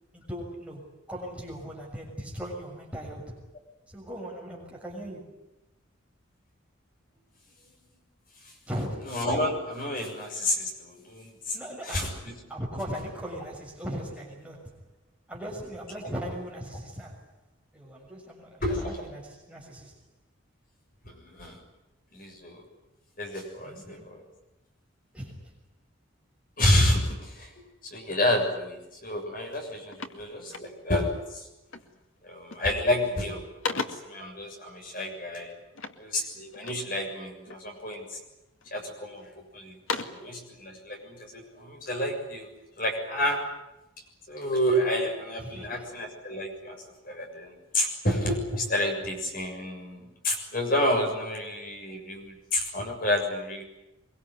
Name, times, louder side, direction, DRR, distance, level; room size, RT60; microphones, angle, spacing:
voice 1, 0.1-3.4 3.9-5.3 8.7-9.2 11.5-14.8 15.3-17.3 17.7-19.9 23.6-24.1 25.1-25.5 28.1-28.2 45.4-46.0, equal, 5° right, -1 dB, 6.6 m, -38 dB
voice 2, 9.1-11.6 11.8-12.3 18.6-19.0 21.0-21.6 22.1-22.6 23.2-24.2 26.6-27.5 27.8-31.4 32.2-33.4 33.7-35.6 36.0-38.2 38.7-39.7 40.0-42.5 42.8-43.4 44.3-46.8 47.0-53.6, left 1 dB, 45° left, 2 dB, 6.8 m, -29 dB
sound 1, 29.1-29.2 29.5-31.1 31.7-32.0 32.4-32.9 33.2-34.2 35.7-36.9 37.5-38.1 38.6-39.3 39.6-40.3, left 4 dB, 80° left, 2.3 m, -37 dB
24.0 x 23.5 x 9.4 m, 0.93 s
head